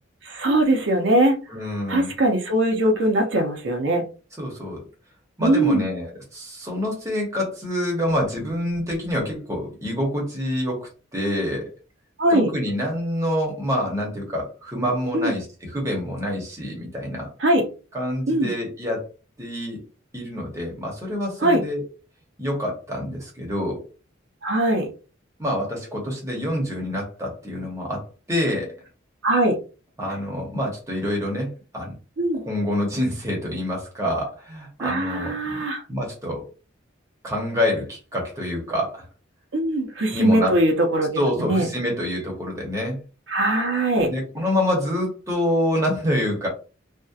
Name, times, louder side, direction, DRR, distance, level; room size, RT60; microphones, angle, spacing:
voice 1, 0.2-1.4 1.9-4.0 5.4-5.9 12.2-12.5 15.1-15.3 17.4-17.6 18.3-18.5 21.4-21.6 24.4-24.9 29.2-29.6 32.2-32.4 34.8-35.8 39.5-41.7 43.3-44.1, right 1 dB, 65° right, 3 dB, 0.5 m, -21 dB
voice 2, 1.5-2.1 4.4-4.8 5.4-11.7 12.3-17.3 17.9-19.1 19.4-19.8 20.1-21.8 22.4-23.8 25.4-28.7 30.0-31.9 32.4-35.6 35.9-36.5 37.2-39.0 40.1-40.5 41.2-43.0 44.1-46.5, left 1 dB, 15° right, -1 dB, 0.7 m, -27 dB
2.6 x 2.1 x 2.3 m, 0.34 s
head